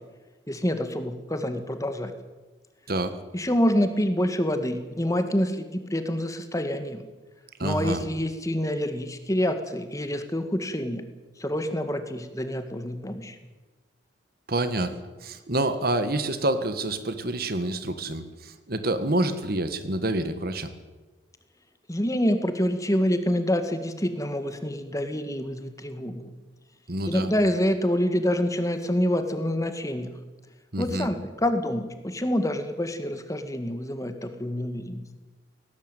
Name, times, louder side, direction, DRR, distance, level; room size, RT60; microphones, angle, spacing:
voice 1, 0.5-2.1 3.3-7.0 7.6-11.0 11.4-13.4 21.9-26.3 27.1-30.1 30.8-35.0, equal, 15° left, 8 dB, 1.9 m, -27 dB
voice 2, 7.6-8.0 14.5-14.9 15.2-20.7 26.9-27.3 30.7-31.1, right 1 dB, 55° right, 10 dB, 1.7 m, -27 dB
18.5 x 18.0 x 9.2 m, 1.2 s
head